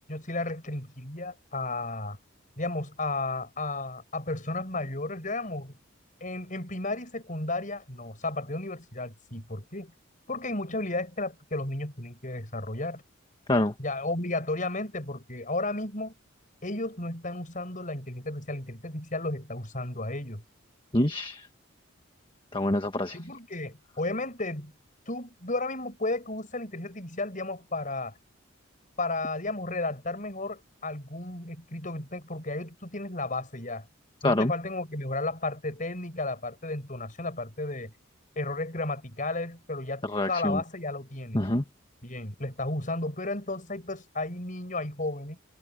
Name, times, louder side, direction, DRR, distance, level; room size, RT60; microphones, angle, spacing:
voice 1, 0.0-2.2 2.6-5.7 6.2-9.9 10.3-13.0 13.8-16.1 16.6-20.4 23.1-24.7 25.1-28.2 29.0-33.9 34.2-37.9 38.4-41.4 42.0-45.4, left 2 dB, 40° left, 6.3 m, -33 dB
voice 2, 20.9-21.5 22.5-23.2 34.2-34.5 40.0-40.6 41.3-41.6, left 1 dB, 25° left, 1.5 m, -26 dB
head